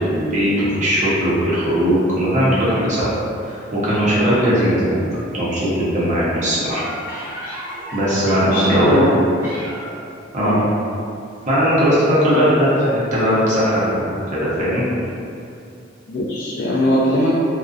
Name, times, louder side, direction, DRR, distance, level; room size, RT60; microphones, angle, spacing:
voice 1, 0.0-3.1 3.4-5.0 5.3-6.8 7.9-9.0 10.3-10.6 11.5-14.8, equal, 40° right, -9 dB, 0.7 m, -18 dB
sound 1, 6.7-10.1 11.4-11.6 12.0-12.1, equal, 15° right, 1.0 m, -32 dB
voice 2, 8.5-9.1 10.4-10.6 12.3-12.5 16.1-17.3, equal, 55° left, -7 dB, 0.3 m, -20 dB
2.5 x 2.2 x 2.3 m, 2.5 s
head